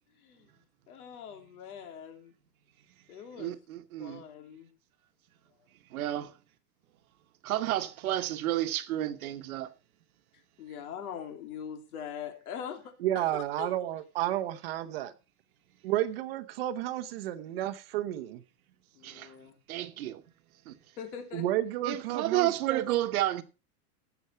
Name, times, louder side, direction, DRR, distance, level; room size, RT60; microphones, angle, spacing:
voice 1, 0.1-2.3 3.1-3.5 4.0-4.7 10.6-13.7 18.9-19.6 21.0-21.4, left 8 dB, 75° left, 3.2 m, -42 dB
voice 2, 3.4-4.2 5.9-6.3 7.4-9.7 19.0-19.3 19.7-20.2 20.7-20.8 21.8-23.4, right 13 dB, 70° right, 1.3 m, -31 dB
voice 3, 13.0-15.1 15.8-18.4 21.3-22.8, right 13 dB, 40° right, 0.9 m, -31 dB
16.5 x 7.1 x 4.5 m
supercardioid pair, 180°, 45 cm